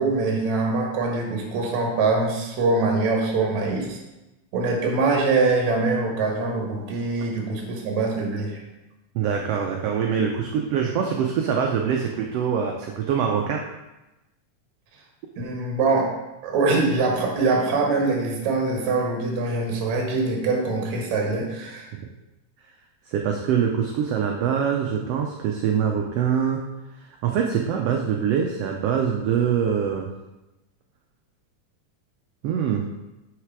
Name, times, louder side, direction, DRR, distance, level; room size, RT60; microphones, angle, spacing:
voice 1, 0.0-4.0 4.5-8.6 15.4-16.1 16.4-21.9, right 3 dB, 70° right, 0 dB, 2.5 m, -23 dB
voice 2, 9.1-13.6 21.9-22.1 23.1-26.6 27.2-30.1 32.4-32.8, right 7 dB, 90° right, 2 dB, 1.3 m, -24 dB
6.5 x 5.8 x 4.7 m, 1.0 s
omnidirectional pair, 3.5 m